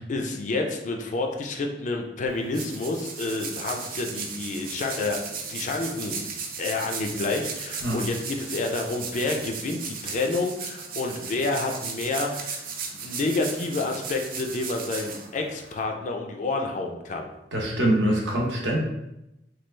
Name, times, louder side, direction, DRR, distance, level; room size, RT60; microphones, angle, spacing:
voice 1, 0.1-5.2 5.5-6.2 6.6-12.6 12.9-17.3, left 3 dB, 45° left, 3 dB, 0.4 m, -29 dB
sound 1, 2.3-15.8, right 5 dB, 55° right, 0.5 m, -36 dB
voice 2, 17.5-18.8, right 1 dB, 70° right, -2 dB, 0.8 m, -24 dB
3.1 x 2.3 x 3.2 m, 0.90 s
head